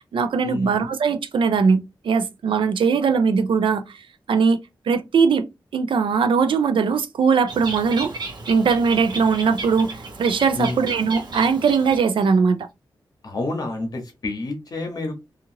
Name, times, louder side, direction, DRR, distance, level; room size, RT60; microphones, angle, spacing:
voice 1, 0.1-4.0 4.3-4.6 4.9-5.4 5.7-8.1 8.5-12.7, right 5 dB, 85° right, 0.4 m, -20 dB
Bird, 7.5-12.3, right 3 dB, 55° right, 0.7 m, -34 dB
voice 2, 13.2-15.2, left 2 dB, 50° left, 0.9 m, -28 dB
2.9 x 2.4 x 2.7 m
wide cardioid pair, 175°, 8 cm